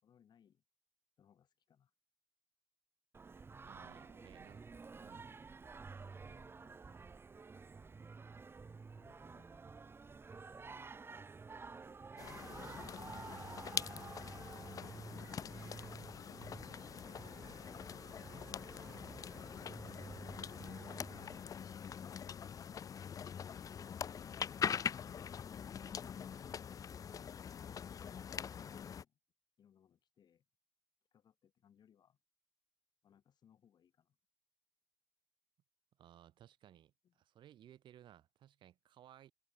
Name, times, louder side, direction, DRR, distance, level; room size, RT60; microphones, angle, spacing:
voice 1, 0.0-0.6 1.2-1.9 3.8-4.4 6.3-7.0 9.0-9.6 10.3-11.0 28.6-29.2 29.6-30.5 31.1-32.2 33.0-34.2 37.0-37.2, left 8 dB, 65° left, 4.0 m, -70 dB
Singing, 3.1-21.4, right 4 dB, 30° right, 1.4 m, -52 dB
voice 2, 3.6-4.6 5.0-5.3 36.0-39.3, right 11 dB, 85° right, 5.8 m, -60 dB
sound 1, 12.2-29.0, left 7 dB, 50° left, 0.5 m, -44 dB
cardioid pair, 120°, 8 cm